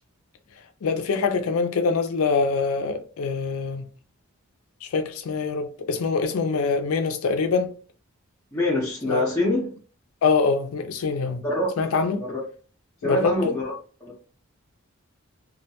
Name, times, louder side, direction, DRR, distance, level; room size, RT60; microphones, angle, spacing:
voice 1, 0.8-3.8 4.9-7.7 9.1-9.2 10.2-11.4 11.8-12.2 13.0-13.6, left 4 dB, 80° left, 0.4 m, -24 dB
voice 2, 8.5-9.7 11.4-11.7 12.1-12.4 13.0-13.7 14.0-14.1, left 1 dB, 15° left, 0.6 m, -25 dB
2.2 x 2.1 x 2.8 m
head